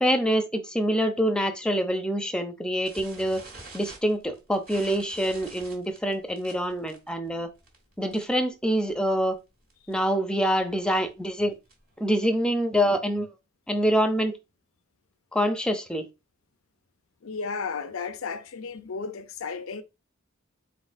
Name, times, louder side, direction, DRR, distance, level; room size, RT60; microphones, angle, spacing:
voice 1, 0.0-3.4 3.7-7.5 8.0-9.4 9.9-11.5 12.0-13.3 13.7-14.3 15.3-16.1, equal, 5° left, 0.6 m, -25 dB
sound 1, 2.8-8.5 8.7-9.0 9.3-9.4 9.7-10.0 10.5-12.0, right 3 dB, 45° right, 1.6 m, -47 dB
voice 2, 17.2-19.8, left 5 dB, 85° left, 0.6 m, -34 dB
4.2 x 4.1 x 2.6 m
head